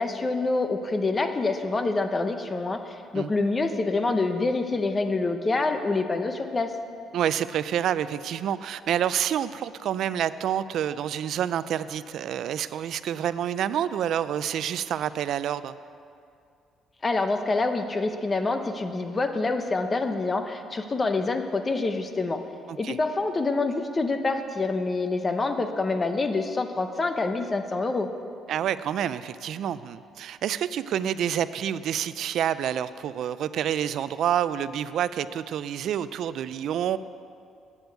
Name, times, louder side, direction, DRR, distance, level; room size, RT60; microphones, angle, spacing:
voice 1, 0.0-6.7 17.0-22.4 22.8-28.1, left 3 dB, 25° left, 7 dB, 0.8 m, -26 dB
voice 2, 7.1-15.7 22.7-23.0 28.5-37.0, right 10 dB, 65° right, 15 dB, 0.4 m, -28 dB
8.6 x 8.0 x 8.1 m, 2.5 s
cardioid pair, 125°, 0 cm